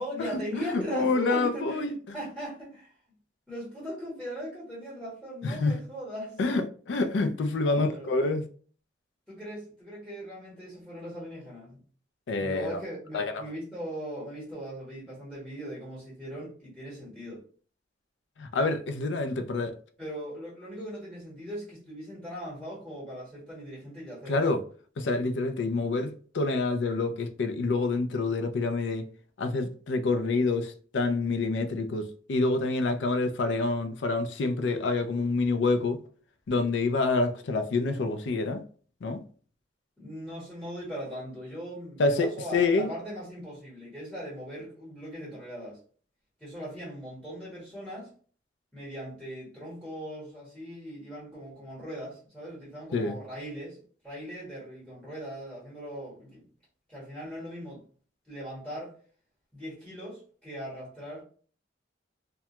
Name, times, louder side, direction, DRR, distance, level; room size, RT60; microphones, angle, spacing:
voice 1, 0.0-2.9 3.5-6.4 7.6-8.1 9.3-11.8 12.4-17.4 20.0-24.6 40.0-45.8 46.4-48.1 48.7-53.8 54.0-56.5 56.9-57.8 58.3-58.9 59.5-61.2, equal, 5° left, 1.0 m, -39 dB
voice 2, 0.5-1.9 5.4-5.8 6.4-8.5 12.3-12.8 13.1-13.3 18.4-19.8 24.3-24.6 25.0-29.1 29.4-36.0 36.5-38.6 39.0-39.2 42.0-42.9 52.9-53.2, left 3 dB, 75° left, 0.4 m, -27 dB
2.2 x 2.1 x 2.8 m
head